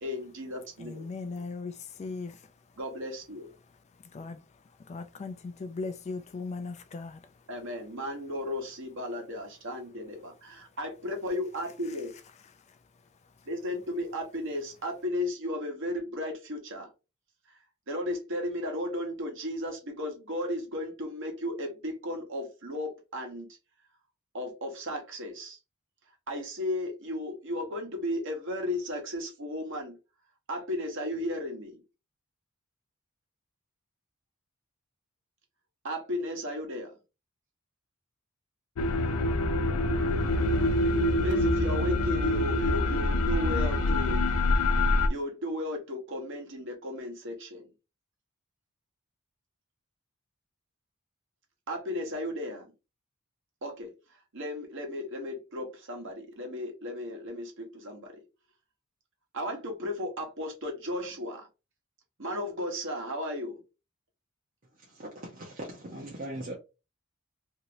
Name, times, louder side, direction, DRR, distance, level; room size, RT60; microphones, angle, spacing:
voice 1, 0.0-1.0 2.8-3.5 7.5-12.1 13.5-16.9 17.9-23.5 24.3-25.6 26.3-30.0 30.5-31.8 35.8-36.9 41.2-44.3 45.1-47.7 51.7-52.7 53.6-53.9 54.3-58.1 59.3-61.4 62.2-63.6, left 1 dB, 60° right, 1.1 m, -35 dB
voice 2, 0.8-2.4 4.1-4.4 4.8-7.2, left 4 dB, 30° left, 0.3 m, -38 dB
sound 1, 38.8-45.1, left 1 dB, 85° left, 0.5 m, -25 dB
voice 3, 64.7-66.5, right 1 dB, 40° right, 0.7 m, -40 dB
3.0 x 2.8 x 2.8 m
head